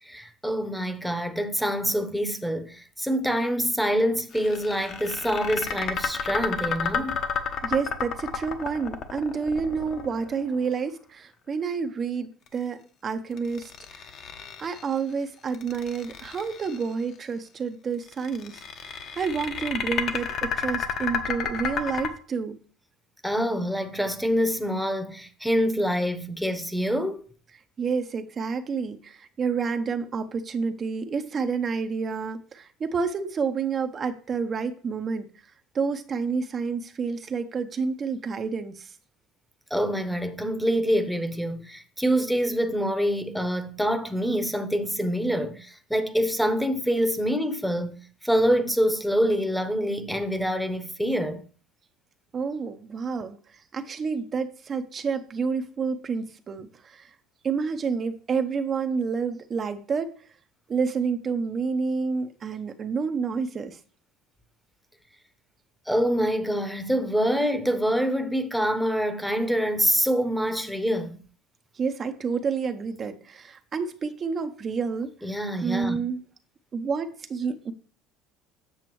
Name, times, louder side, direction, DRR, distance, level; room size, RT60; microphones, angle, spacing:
voice 1, 0.0-7.2 23.2-27.2 39.7-51.5 65.9-71.2 75.2-76.0, equal, ahead, 0.8 m, -26 dB
sound 1, 4.3-10.5 13.4-14.9 15.5-16.8 18.1-22.1, left 6 dB, 50° left, 1.0 m, -31 dB
voice 2, 7.6-14.1 14.6-22.6 27.8-35.3 35.7-38.9 52.3-57.1 57.4-60.1 60.7-63.8 71.7-75.1 75.6-76.2 76.7-77.7, right 5 dB, 35° right, 0.6 m, -29 dB
7.8 x 6.6 x 3.1 m
supercardioid pair, 110°, 0 cm